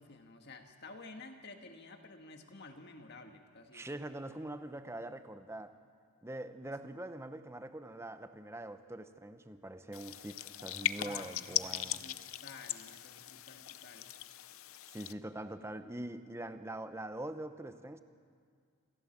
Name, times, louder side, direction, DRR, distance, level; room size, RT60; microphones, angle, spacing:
voice 1, 0.0-4.1 11.0-14.1, left 3 dB, 50° left, 5 dB, 1.7 m, -52 dB
voice 2, 3.7-5.8 6.2-12.0 14.9-18.0, right 1 dB, 10° right, 10 dB, 0.7 m, -43 dB
sound 1, 9.9-15.1, left 12 dB, 70° left, 0.6 m, -39 dB
27.5 x 15.0 x 7.4 m, 2.2 s
head